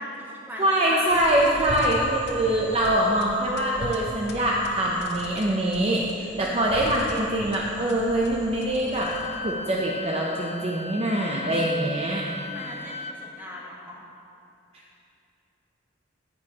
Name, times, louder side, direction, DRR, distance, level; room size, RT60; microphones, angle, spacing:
voice 1, 0.0-1.0 1.5-2.1 6.4-6.6 12.4-14.0, equal, 10° right, -4 dB, 1.2 m, -40 dB
voice 2, 0.6-9.1 9.4-12.3, right 1 dB, 30° right, -2 dB, 0.6 m, -24 dB
sound 1, 1.1-9.5, left 1 dB, 60° left, 0.8 m, -40 dB
Wind instrument woodwind instrument, 8.9-13.2, left 2 dB, 35° left, 0.3 m, -37 dB
9.5 x 8.4 x 2.9 m, 2.7 s
head